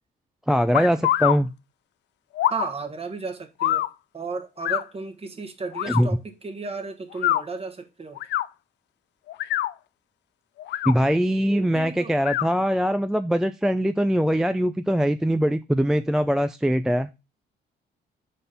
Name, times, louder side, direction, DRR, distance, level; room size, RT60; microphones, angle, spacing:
voice 1, 0.5-1.5 5.9-6.1 10.9-17.1, equal, 5° right, 0.3 m, -22 dB
sound 1, 0.7-1.4 2.3-2.7 3.6-3.9 4.6-4.8 5.7-6.0 7.1-7.4 8.2-8.5 9.3-9.7 10.6-10.9 12.2-12.5, left 13 dB, 70° left, 0.4 m, -24 dB
voice 2, 2.5-3.9 4.1-8.2 11.5-12.1, right 4 dB, 30° right, 1.5 m, -34 dB
5.2 x 4.3 x 5.5 m
cardioid pair, 85°, 19 cm